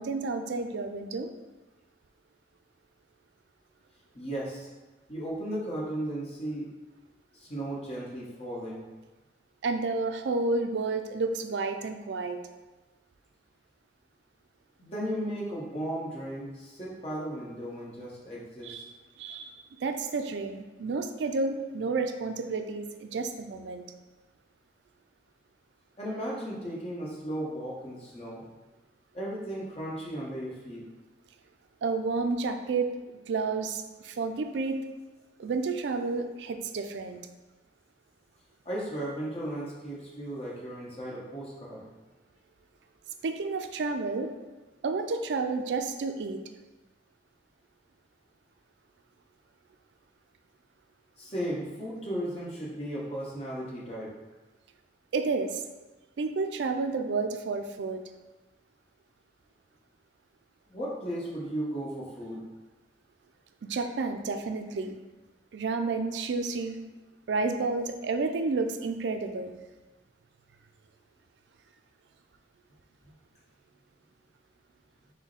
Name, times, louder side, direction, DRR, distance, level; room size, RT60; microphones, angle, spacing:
voice 1, 0.0-1.3 9.6-12.4 18.6-23.8 31.8-32.9 33.3-34.9 35.4-37.2 43.2-44.3 44.8-46.4 55.1-55.6 56.2-58.0 63.6-65.0 65.5-66.8 67.3-69.5, right 3 dB, 85° right, 7 dB, 0.4 m, -31 dB
voice 2, 4.1-4.7 5.1-6.7 7.3-8.8 14.8-18.8 26.0-28.5 29.1-30.8 38.6-41.9 51.2-54.1 60.7-62.4, right 1 dB, 35° left, -6 dB, 1.2 m, -35 dB
5.9 x 2.2 x 4.0 m, 1.2 s
head